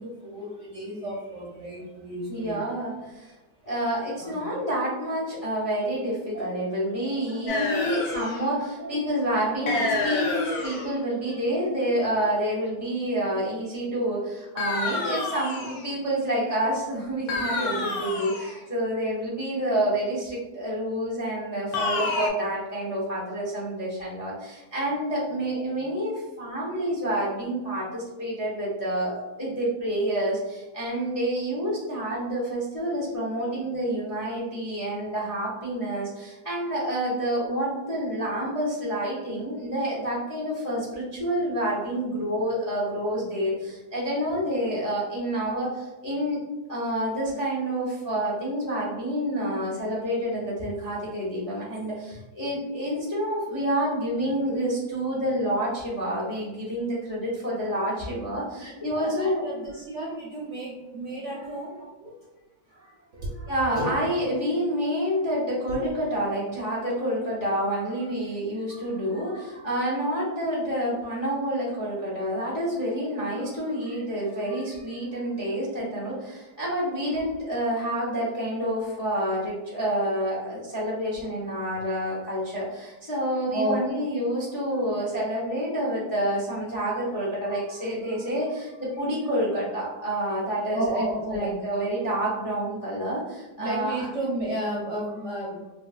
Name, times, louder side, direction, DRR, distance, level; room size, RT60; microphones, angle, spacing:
voice 1, 0.0-2.6 3.0-3.3 4.2-4.5 6.3-6.5 6.9-7.6 8.6-9.1 9.4-9.5 10.7-10.8 11.3-11.5 12.4-12.6 58.2-58.3 58.6-62.1 62.7-63.9 65.7-65.8 67.8-67.9 68.7-69.8 73.3-75.2 83.5-83.7 84.4-84.5 87.1-88.3 89.8-90.0 90.7-91.6 92.8-92.9 93.6-95.7, right 1 dB, 60° right, -5 dB, 0.8 m, -35 dB
voice 2, 2.3-3.3 3.6-46.4 46.7-59.4 63.5-91.1 91.3-93.9, right 1 dB, 35° left, -6 dB, 0.5 m, -28 dB
Synth descending tones glitchy, 7.5-8.5 9.7-11.0 14.6-15.9 17.3-18.6 21.7-22.3, left 3 dB, 70° left, 1.1 m, -28 dB
3.0 x 2.6 x 2.3 m, 1.1 s
omnidirectional pair, 1.7 m